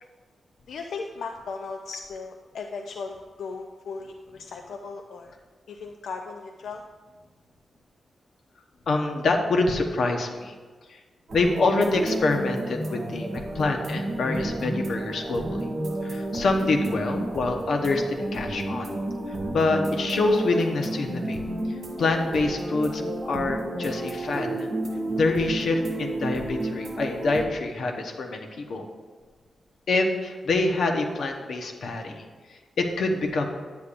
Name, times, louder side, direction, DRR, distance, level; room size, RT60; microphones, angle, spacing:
voice 1, 0.7-5.3 5.7-6.8, left 4 dB, 90° left, 3 dB, 0.4 m, -37 dB
voice 2, 8.9-10.6 10.9-11.0 11.3-15.7 16.0-18.9 19.3-21.4 22.0-24.7 25.2-28.8 29.9-33.5, left 3 dB, 65° left, 3 dB, 0.9 m, -26 dB
sound 1, 11.3-27.4, right 1 dB, 60° right, 2.0 m, -31 dB
10.5 x 8.3 x 2.5 m, 1.4 s
wide cardioid pair, 140°, 0 cm